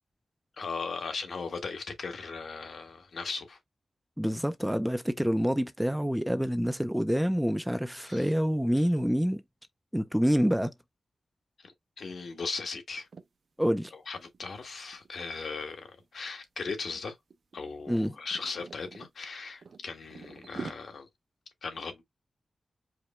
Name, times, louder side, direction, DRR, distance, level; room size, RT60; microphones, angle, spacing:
voice 1, 0.6-3.6 8.1-8.3 8.8-8.9 11.6-13.1 13.9-17.2 17.5-21.1 21.6-22.0, left 4 dB, 65° left, 1.4 m, -38 dB
voice 2, 4.2-9.4 9.9-10.7 13.6-13.9 17.9-18.1, equal, 5° right, 0.4 m, -27 dB
sound 1, 13.0-13.3 13.7-13.9 14.2-16.1 16.7-17.0 17.3-19.1 19.6-20.7, right 5 dB, 60° right, 0.6 m, -45 dB
4.9 x 2.2 x 4.2 m
wide cardioid pair, 140°, 0 cm